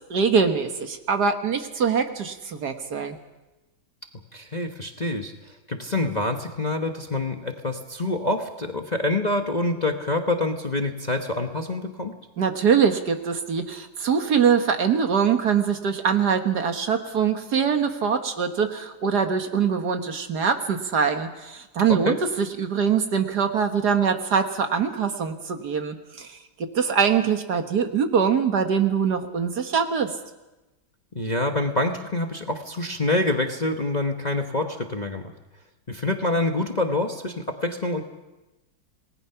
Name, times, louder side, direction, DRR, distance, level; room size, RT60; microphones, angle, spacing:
voice 1, 0.1-3.2 12.4-30.1, right 6 dB, 60° right, 6 dB, 1.8 m, -23 dB
voice 2, 4.3-12.1 21.9-22.2 31.1-35.3 35.9-38.0, left 2 dB, 25° left, 3 dB, 1.1 m, -26 dB
27.5 x 19.5 x 5.8 m, 1.0 s
omnidirectional pair, 2.1 m